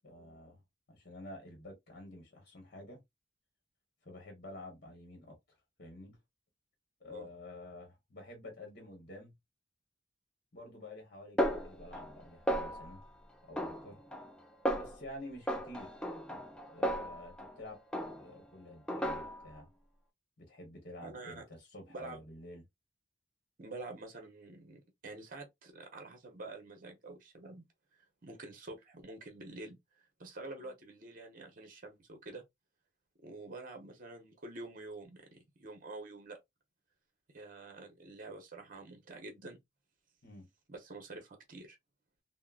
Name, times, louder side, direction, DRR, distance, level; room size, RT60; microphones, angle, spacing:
voice 1, 0.0-0.6 0.9-3.0 4.0-5.4 5.8-6.2 7.0-9.4 10.5-13.0 13.4-14.0 14.8-15.9 16.3-16.4 16.7-17.8 18.1-19.7 20.4-22.6 30.5-30.7 40.2-40.5, left 1 dB, 50° left, 1.0 m, -49 dB
Snare drum, 11.4-12.2 12.5-13.0 13.6-14.3 14.7-15.0 15.5-17.6 17.9-18.4 18.9-19.6, equal, 5° left, 0.4 m, -35 dB
voice 2, 21.0-21.4 21.9-22.2 23.6-27.6 28.2-32.4 33.2-36.4 37.3-39.6 40.7-41.8, right 2 dB, 45° right, 0.8 m, -47 dB
3.6 x 2.0 x 2.3 m
head